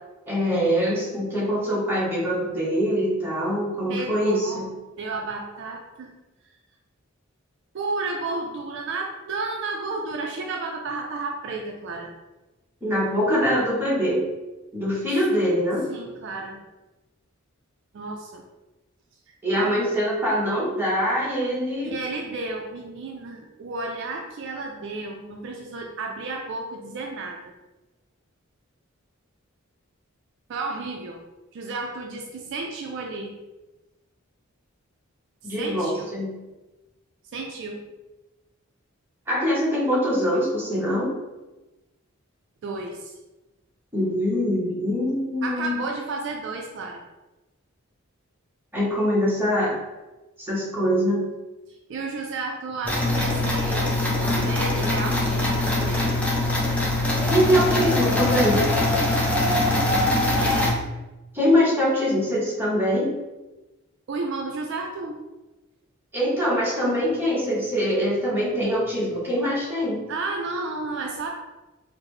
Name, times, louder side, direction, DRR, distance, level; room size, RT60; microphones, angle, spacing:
voice 1, 0.3-4.7 12.8-14.3 14.7-15.8 19.4-21.9 35.4-36.3 39.3-41.1 43.9-45.8 48.7-49.7 50.4-51.3 57.3-58.6 61.3-63.1 66.1-70.0, equal, 10° right, -7 dB, 0.9 m, -23 dB
voice 2, 3.9-4.7 5.0-6.1 7.7-12.1 15.9-16.6 17.9-18.4 19.5-19.8 21.8-27.5 30.5-31.2 31.5-33.3 35.4-36.1 37.3-37.8 42.6-43.1 45.4-47.0 51.9-56.1 60.4-60.7 64.1-65.2 70.1-71.3, right 3 dB, 60° right, 1 dB, 0.3 m, -32 dB
sound 1, 52.8-60.7, left 1 dB, 5° left, 0.5 m, -22 dB
3.7 x 2.0 x 3.1 m, 1.1 s
head